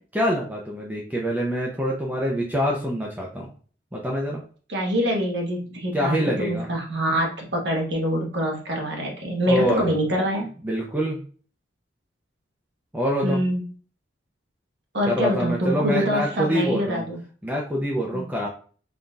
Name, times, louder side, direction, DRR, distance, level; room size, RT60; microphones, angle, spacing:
voice 1, 0.1-3.5 3.9-4.4 5.9-6.7 9.5-10.0 10.6-11.2 12.9-13.4 15.1-17.0 17.4-18.5, equal, 10° right, -2 dB, 0.5 m, -25 dB
voice 2, 4.7-10.5 13.2-13.6 14.9-17.2 18.1-18.3, equal, 65° right, 0 dB, 1.2 m, -25 dB
3.9 x 3.8 x 2.3 m, 0.41 s
head